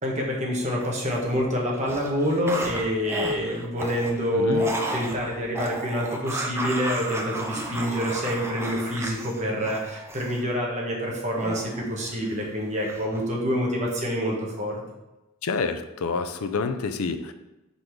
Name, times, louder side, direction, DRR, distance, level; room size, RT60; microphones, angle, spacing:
voice 1, 0.0-14.8, equal, 35° right, -2 dB, 1.2 m, -27 dB
Zombie freak biting, 0.8-1.4 1.7-10.4 11.4-12.5 12.8-13.2, right 1 dB, 10° right, 0.5 m, -34 dB
voice 2, 4.3-4.6 15.4-17.3, left 4 dB, 85° left, 9 dB, 0.5 m, -28 dB
5.0 x 4.0 x 4.6 m, 0.99 s
head